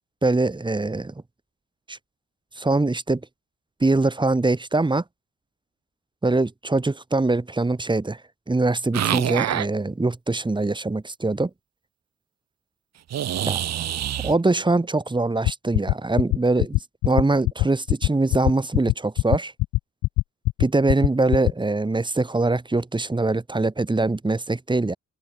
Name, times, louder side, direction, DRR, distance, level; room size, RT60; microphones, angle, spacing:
voice 1, 0.2-1.1 1.9-2.0 2.6-3.2 3.8-5.0 6.2-8.2 8.5-11.5 13.5-13.6 14.2-19.5 20.6-25.0, right 2 dB, 15° right, 2.2 m, -23 dB
sound 1, 8.9-9.7 13.1-14.4, right 11 dB, 60° right, 1.2 m, -25 dB
sound 2, 15.4-21.5, left 19 dB, 75° left, 0.5 m, -20 dB
open air
cardioid pair, 90°, 30 cm